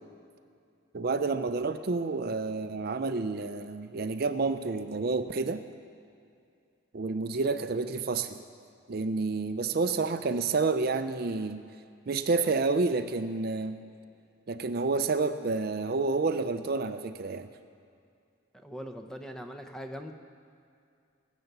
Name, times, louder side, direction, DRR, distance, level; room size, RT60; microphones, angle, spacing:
voice 1, 0.9-5.6 6.9-8.4 8.9-11.6 12.1-13.8 14.5-17.5, right 3 dB, 50° right, 10 dB, 0.5 m, -29 dB
voice 2, 18.5-20.1, equal, 5° left, 5 dB, 0.7 m, -41 dB
20.5 x 8.2 x 6.7 m, 2.4 s
head